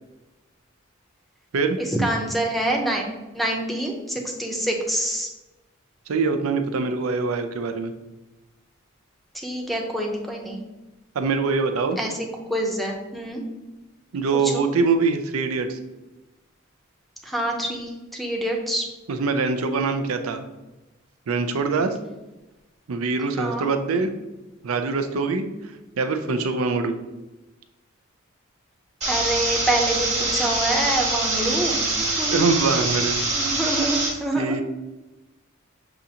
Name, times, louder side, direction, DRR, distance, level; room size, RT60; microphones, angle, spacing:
voice 1, 1.8-5.3 9.4-10.6 12.0-12.1 12.5-13.4 14.3-14.6 17.2-18.8 23.4-23.7 29.1-32.5 33.3-34.6, right 1 dB, ahead, 1 dB, 0.6 m, -26 dB
voice 2, 6.1-7.9 11.2-12.0 14.1-15.8 19.1-20.4 21.3-21.9 22.9-24.1 24.6-25.5 26.0-27.0 32.3-33.3 34.4-34.6, right 4 dB, 90° right, 7 dB, 0.5 m, -23 dB
sound 1, 29.0-34.1, right 2 dB, 35° right, 1.2 m, -24 dB
6.8 x 2.5 x 2.8 m, 1.1 s
head